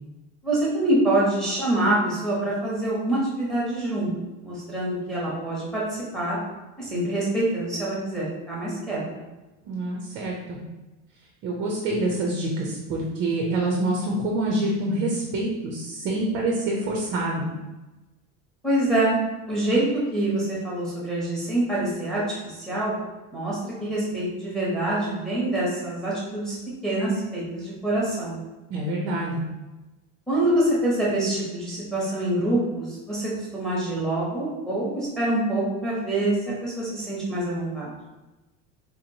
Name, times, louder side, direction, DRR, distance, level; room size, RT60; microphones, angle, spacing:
voice 1, 0.4-4.1 4.4-6.4 6.8-9.0 18.6-19.2 19.5-19.8 20.1-22.9 23.3-26.6 26.8-28.4 30.3-38.0, right 1 dB, ahead, -6 dB, 0.7 m, -25 dB
voice 2, 9.7-10.6 11.4-17.5 28.7-29.4, right 2 dB, 35° right, -1 dB, 0.4 m, -26 dB
3.7 x 2.8 x 2.6 m, 1.1 s
cardioid pair, 175°, 34 cm